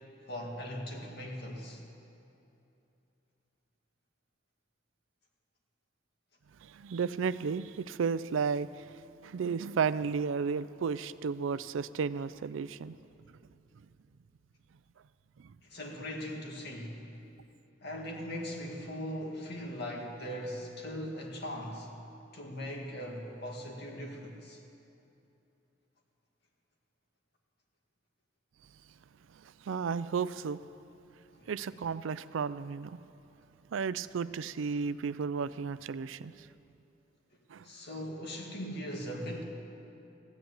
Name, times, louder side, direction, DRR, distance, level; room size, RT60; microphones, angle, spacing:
voice 1, 0.3-1.8 15.6-17.0 17.8-21.9 22.3-24.6 31.4-31.5 37.6-39.4, equal, 60° left, 0 dB, 2.1 m, -40 dB
voice 2, 6.6-13.0 15.4-15.6 29.4-30.6 31.5-33.0 33.7-36.5 37.5-37.6, right 5 dB, 80° right, 16 dB, 0.4 m, -33 dB
15.0 x 10.5 x 8.1 m, 2.8 s
head